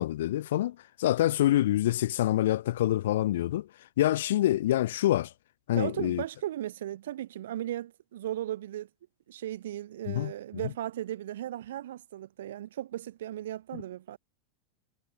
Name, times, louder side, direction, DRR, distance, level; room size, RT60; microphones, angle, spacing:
voice 1, 0.0-3.7 4.0-5.3 5.7-6.2 10.1-10.3, left 13 dB, 75° left, 1.8 m, -26 dB
voice 2, 5.7-8.9 9.3-14.2, right 12 dB, 80° right, 2.9 m, -36 dB
hypercardioid pair, 125°, 0 cm